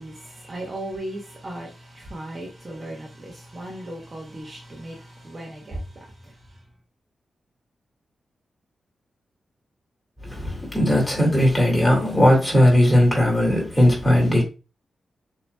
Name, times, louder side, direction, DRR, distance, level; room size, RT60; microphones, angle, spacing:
voice 1, 0.0-6.6, right 1 dB, 25° right, 1.0 m, -37 dB
voice 2, 10.2-14.4, left 1 dB, 10° left, 2.0 m, -18 dB
6.9 x 2.9 x 2.2 m
wide cardioid pair, 140°, 0 cm